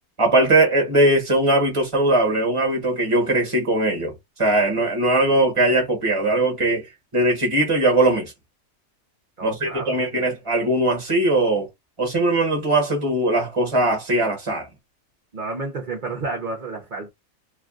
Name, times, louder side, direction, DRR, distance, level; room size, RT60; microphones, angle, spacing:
voice 1, 0.2-4.1 4.4-8.3 9.4-11.7 12.0-14.7, right 2 dB, 20° right, 1.2 m, -20 dB
voice 2, 9.4-10.2 15.3-17.1, right 3 dB, 40° right, 0.8 m, -31 dB
3.1 x 2.4 x 2.4 m
omnidirectional pair, 1.6 m